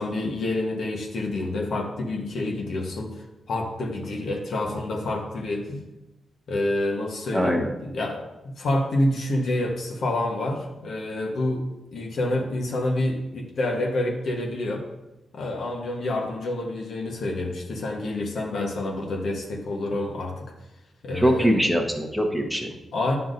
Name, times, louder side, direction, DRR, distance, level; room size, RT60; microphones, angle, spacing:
voice 1, 0.0-5.8 6.5-11.7 11.9-14.9 15.3-20.5 21.0-21.7 22.9-23.1, left 1 dB, 70° left, 2 dB, 1.2 m, -28 dB
voice 2, 7.3-7.7 21.1-22.7, equal, 5° right, 3 dB, 1.0 m, -23 dB
9.2 x 5.8 x 2.6 m, 0.97 s
cardioid pair, 75°, 0 cm